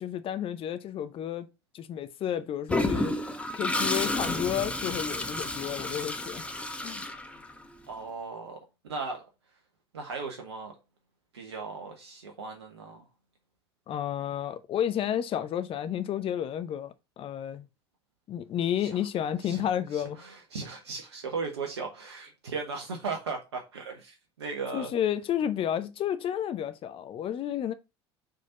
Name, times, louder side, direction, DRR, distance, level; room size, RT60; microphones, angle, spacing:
voice 1, 0.0-1.5 1.7-3.2 3.5-7.0 13.9-17.7 18.3-20.2 24.7-27.7, left 10 dB, 40° left, 0.7 m, -31 dB
Toilet flush, 2.7-7.8, left 2 dB, 10° left, 1.0 m, -31 dB
voice 2, 7.9-8.6 8.8-9.2 9.9-10.7 11.3-13.0 18.8-18.9 19.4-19.6 19.9-24.9, right 4 dB, 80° right, 1.0 m, -37 dB
5.2 x 3.9 x 5.4 m
figure-of-eight pair, 65°, 14 cm